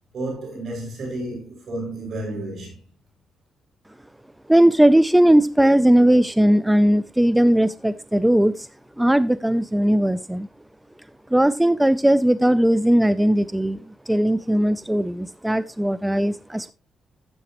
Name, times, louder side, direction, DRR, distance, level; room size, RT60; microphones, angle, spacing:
voice 1, 0.1-2.8, right 1 dB, 65° right, 6.4 m, -31 dB
voice 2, 4.5-8.7 9.0-10.5 11.3-16.7, right 1 dB, 5° right, 0.4 m, -18 dB
12.5 x 8.2 x 3.0 m
cardioid pair, 85°, 0 cm